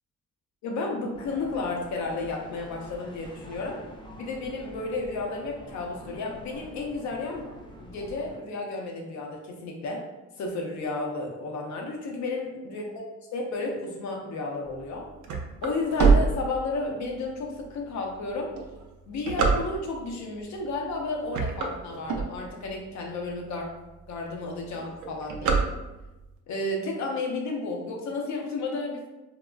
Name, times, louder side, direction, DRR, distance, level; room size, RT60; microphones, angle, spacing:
voice 1, 0.6-3.8 4.2-7.5 7.8-10.0 10.4-12.8 13.3-15.1 15.6-18.5 19.1-23.7 24.1-25.6 26.5-29.1, left 3 dB, 65° left, 1 dB, 0.7 m, -32 dB
sound 1, 1.1-8.4, equal, 15° left, 0.4 m, -46 dB
sound 2, 14.8-17.1 17.6-17.7 18.4-20.1 20.7-21.0 21.2-22.8 23.3-23.4 23.6-23.7 24.0-24.4 24.6-26.2, right 5 dB, 75° right, 0.5 m, -24 dB
3.7 x 2.0 x 2.3 m, 1.1 s
cardioid pair, 90°, 30 cm